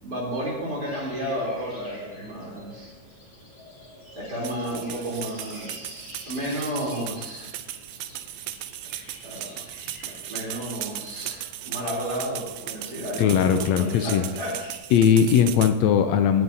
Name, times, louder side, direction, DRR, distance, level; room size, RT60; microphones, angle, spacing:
voice 1, 0.0-2.9 4.2-7.5 9.2-9.6 10.0-13.3 13.6-14.6, equal, 30° right, -4 dB, 3.8 m, -32 dB
sound 1, 0.8-14.8, left 1 dB, 10° left, 2.7 m, -48 dB
sound 2, 4.4-15.7, right 13 dB, 80° right, 1.6 m, -37 dB
voice 2, 13.2-14.2 14.9-16.4, left 8 dB, 80° left, 8 dB, 1.5 m, -19 dB
17.0 x 9.7 x 2.7 m, 1.1 s
omnidirectional pair, 3.5 m